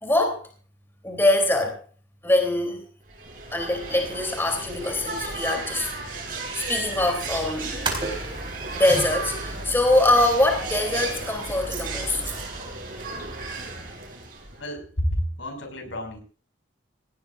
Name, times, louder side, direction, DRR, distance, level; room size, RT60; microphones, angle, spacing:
voice 1, 0.0-0.4 1.0-1.8 2.2-2.8 3.5-5.9 6.5-7.7 8.2-8.3 8.7-12.3, left 1 dB, 10° left, 4 dB, 3.2 m, -23 dB
sound 1, 3.1-14.7, right 3 dB, 45° right, 6.6 m, -35 dB
sound 2, 6.9-12.5, right 2 dB, 25° right, 4.2 m, -35 dB
voice 2, 14.6-16.2, equal, 80° left, 5 dB, 5.7 m, -29 dB
19.0 x 17.5 x 2.6 m, 0.39 s
head